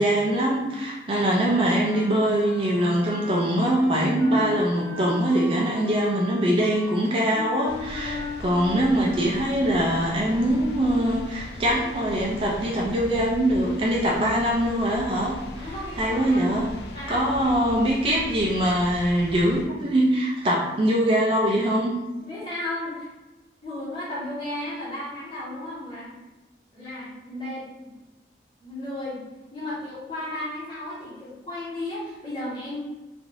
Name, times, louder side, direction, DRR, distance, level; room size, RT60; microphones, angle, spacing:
voice 1, 0.0-16.8 17.1-21.9, right 1 dB, 30° right, -2 dB, 0.4 m, -23 dB
Wind instrument woodwind instrument, 1.8-10.8, left 3 dB, 10° right, 0.9 m, -38 dB
sound 1, 7.7-19.7, left 1 dB, 70° left, 0.4 m, -40 dB
voice 2, 15.6-16.4 16.9-17.5 22.2-23.1 23.6-26.1 26.7-27.6 28.6-29.2 29.5-32.8, left 1 dB, 30° left, -8 dB, 1.1 m, -34 dB
3.2 x 2.6 x 2.6 m, 1.1 s
head